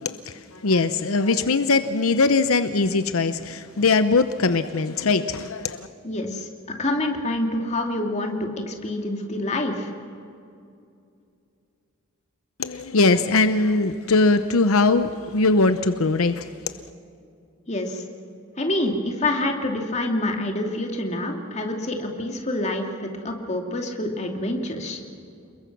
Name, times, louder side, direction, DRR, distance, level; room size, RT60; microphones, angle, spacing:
voice 1, 0.0-5.9 12.6-16.5, left 3 dB, 80° left, 10 dB, 0.8 m, -21 dB
voice 2, 6.0-9.9 17.7-18.0 18.6-25.0, left 1 dB, 30° left, 3 dB, 2.5 m, -27 dB
29.0 x 21.5 x 6.1 m, 2.5 s
head